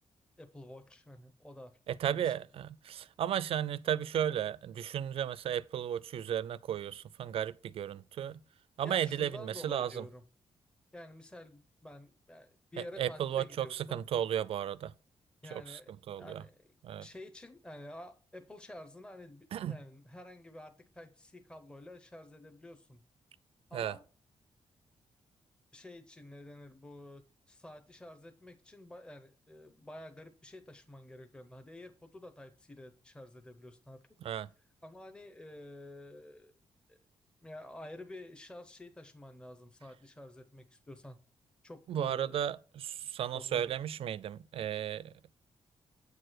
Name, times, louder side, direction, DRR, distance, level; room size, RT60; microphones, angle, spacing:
voice 1, 0.4-1.7 2.0-2.3 8.8-10.2 10.9-14.0 15.4-15.9 16.2-16.7 17.0-23.0 23.7-24.0 25.7-34.0 34.8-36.5 36.9-37.0 37.4-41.2 41.6-42.5 43.3-43.6, left 1 dB, 10° left, 0.7 m, -50 dB
voice 2, 1.9-8.4 8.8-10.0 13.0-14.9 15.5-15.8 16.1-16.4 16.8-17.1 19.5-19.8 23.7-24.0 34.2-34.5 41.9-45.1, right 10 dB, 70° right, 0.4 m, -34 dB
8.1 x 4.7 x 6.2 m
wide cardioid pair, 155°, 10 cm